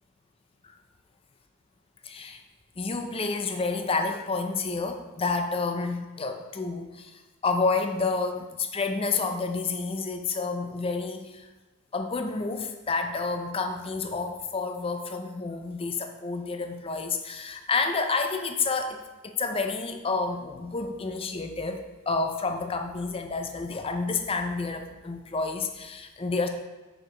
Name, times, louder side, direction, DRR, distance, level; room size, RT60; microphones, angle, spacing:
voice 1, 2.0-2.4 2.8-11.5 11.9-26.5, left 4 dB, 25° left, 6 dB, 0.5 m, -29 dB
6.4 x 4.9 x 4.4 m, 1.2 s
head